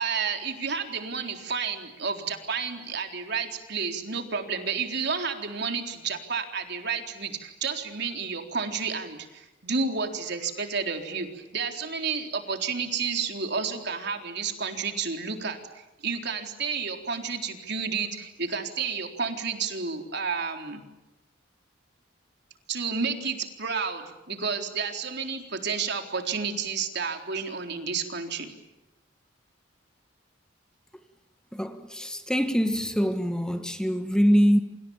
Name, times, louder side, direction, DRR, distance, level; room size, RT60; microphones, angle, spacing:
voice 1, 0.0-20.8 22.7-28.5, right 5 dB, 60° right, 3.9 m, -31 dB
voice 2, 31.5-34.6, equal, 5° left, 1.5 m, -24 dB
29.5 x 27.0 x 7.2 m
head